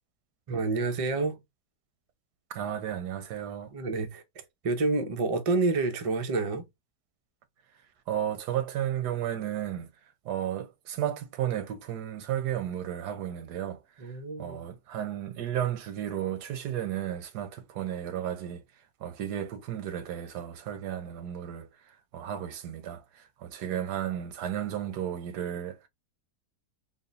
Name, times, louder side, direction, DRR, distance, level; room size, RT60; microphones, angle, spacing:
voice 1, 0.5-1.4 3.7-6.6 14.0-14.6, right 3 dB, 50° right, 0.4 m, -29 dB
voice 2, 2.5-3.7 8.1-9.9 10.2-18.6 19.0-25.9, right 10 dB, 85° right, 1.3 m, -33 dB
3.9 x 2.1 x 3.8 m
omnidirectional pair, 1.7 m